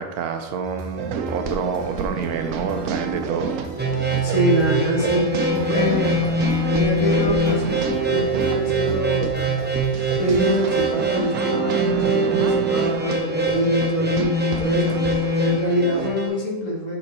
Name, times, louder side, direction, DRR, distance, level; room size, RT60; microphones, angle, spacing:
voice 1, 0.0-3.6, right 5 dB, 85° right, 7 dB, 1.2 m, -27 dB
sound 1, 0.6-11.1, left 2 dB, 40° left, 0.5 m, -39 dB
sound 2, 1.0-16.1, right 7 dB, 70° right, 0.9 m, -30 dB
sound 3, 3.8-16.3, right 1 dB, 10° right, 0.5 m, -23 dB
voice 2, 4.2-9.6 10.2-17.0, equal, 60° left, -2 dB, 1.7 m, -25 dB
6.5 x 4.3 x 4.2 m, 1.1 s
omnidirectional pair, 1.5 m